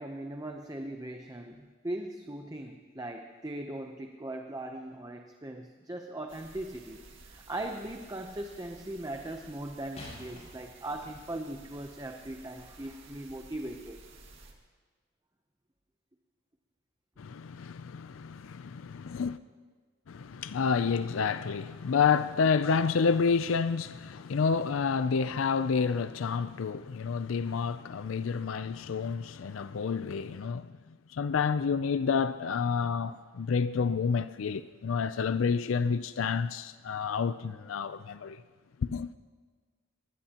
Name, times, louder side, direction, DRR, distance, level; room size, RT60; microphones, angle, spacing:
voice 1, 0.0-7.0 7.3-14.0, right 1 dB, 20° right, 0.7 m, -39 dB
sound 1, 6.3-14.5, right 3 dB, 65° right, 2.0 m, -54 dB
sound 2, 6.9-7.5 10.0-11.5 12.3-12.4, left 1 dB, 35° left, 6.2 m, -50 dB
voice 2, 17.2-19.4 20.1-38.4 38.8-39.1, left 5 dB, 75° left, 0.4 m, -29 dB
23.5 x 19.5 x 2.9 m
head